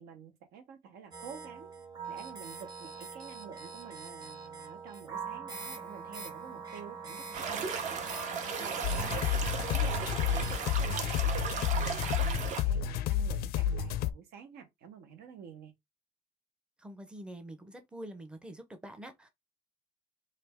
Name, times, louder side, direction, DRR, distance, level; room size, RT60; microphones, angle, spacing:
voice 1, 0.0-1.7 2.1-8.0 8.3-9.3 9.7-15.7, right 7 dB, 85° right, 1.1 m, -50 dB
sound 1, 1.1-10.7, right 5 dB, 25° right, 1.0 m, -43 dB
sound 2, 7.3-12.6, right 6 dB, 50° right, 0.7 m, -36 dB
sound 3, 8.8-14.1, left 8 dB, 80° left, 0.4 m, -30 dB
voice 2, 16.8-19.3, right 1 dB, 5° right, 0.5 m, -46 dB
3.3 x 2.6 x 3.4 m
cardioid pair, 175°, 16 cm